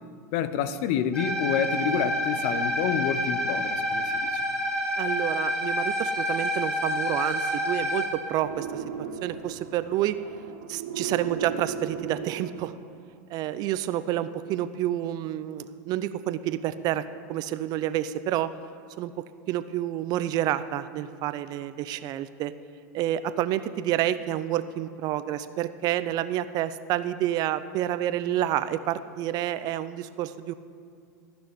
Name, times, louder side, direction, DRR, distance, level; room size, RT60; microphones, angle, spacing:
voice 1, 0.3-4.4, left 8 dB, 65° left, 13 dB, 0.8 m, -28 dB
sound 1, 1.1-8.1, equal, 10° left, 4.0 m, -28 dB
voice 2, 5.0-8.8 9.2-10.2 10.7-12.7 13.3-17.0 17.3-18.5 19.0-22.5 22.9-30.5, right 12 dB, 50° right, 13 dB, 0.6 m, -29 dB
sound 2, 8.4-13.1, right 7 dB, 85° right, 1.0 m, -36 dB
14.5 x 6.2 x 9.5 m, 2.4 s
supercardioid pair, 115°, 9 cm